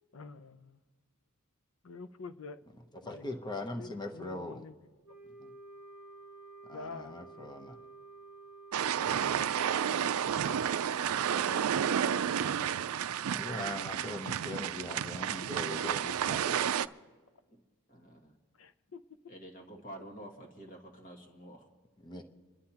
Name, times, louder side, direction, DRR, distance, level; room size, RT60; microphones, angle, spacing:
voice 1, 0.1-0.8 1.8-2.6 3.0-3.2 3.7-4.7 6.7-7.2 9.9-10.6 15.8-15.9 18.5-19.2, left 4 dB, 65° left, 0.6 m, -47 dB
voice 2, 3.0-4.6 5.4-5.5 6.7-7.8 13.3-16.7 22.0-22.2, left 2 dB, 20° left, 0.9 m, -41 dB
Wind instrument woodwind instrument, 5.0-9.5, right 3 dB, 85° left, 2.9 m, -51 dB
sound 1, 8.7-16.9, right 8 dB, 80° right, 0.4 m, -31 dB
voice 3, 11.1-12.3 17.5-17.6 17.9-18.3 19.3-21.7, right 1 dB, 40° left, 1.9 m, -48 dB
28.5 x 11.5 x 2.9 m
head